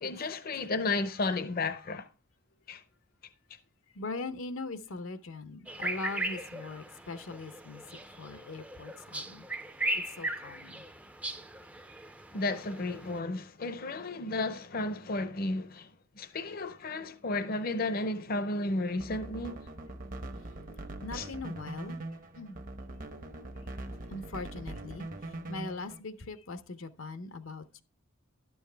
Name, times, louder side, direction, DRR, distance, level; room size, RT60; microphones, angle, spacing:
voice 1, 0.0-2.1 2.7-2.8 12.3-15.9 16.2-19.6 21.1-21.3, left 2 dB, 45° left, 0.6 m, -33 dB
voice 2, 3.9-9.5 9.9-10.8 21.0-22.6 23.8-27.8, left 3 dB, 80° left, 0.7 m, -41 dB
sound 1, 5.7-13.2, right 1 dB, 5° right, 0.4 m, -38 dB
sound 2, 18.9-26.0, right 2 dB, 45° right, 0.9 m, -42 dB
11.5 x 7.1 x 3.3 m
head